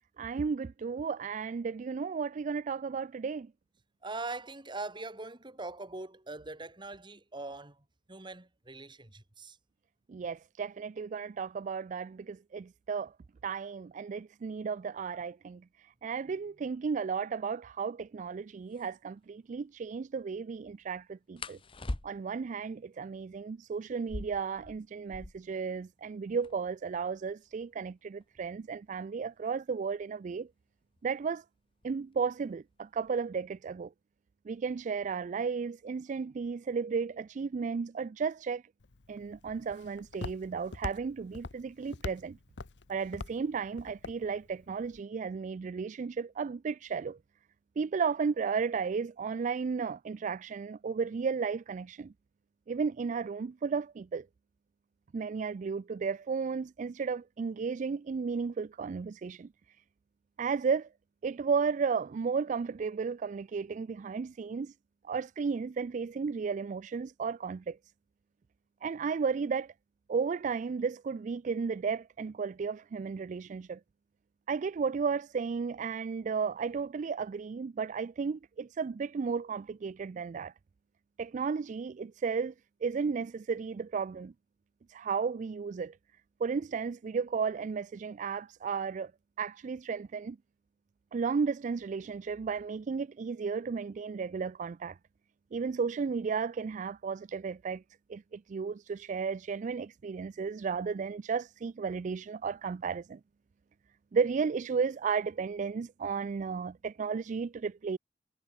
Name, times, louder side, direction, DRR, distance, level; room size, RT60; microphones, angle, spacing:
voice 1, 0.2-3.5 10.1-13.1 13.4-21.6 22.0-30.5 31.0-31.4 31.8-33.9 34.5-38.6 39.1-42.4 42.9-47.2 47.8-52.1 52.7-54.3 55.1-59.5 60.4-60.9 61.2-64.7 65.0-67.8 68.8-69.7 70.1-73.8 74.5-80.5 81.2-82.5 82.8-84.3 84.9-86.0 86.4-89.1 89.4-90.4 91.1-95.0 95.5-97.8 98.1-103.2 104.1-108.0, right 5 dB, 45° right, 0.3 m, -34 dB
voice 2, 4.0-9.6, right 3 dB, 25° right, 2.0 m, -42 dB
sound 1, 18.2-18.3 18.7-18.9 21.4-22.5 23.9-25.6 25.9-26.0 26.2-26.8 27.4-30.0 31.0-31.3 31.7-32.1 32.5-33.2, left 1 dB, 30° left, 1.1 m, -43 dB
Walk footsteps, 38.8-45.0, left 3 dB, 75° left, 0.9 m, -44 dB
head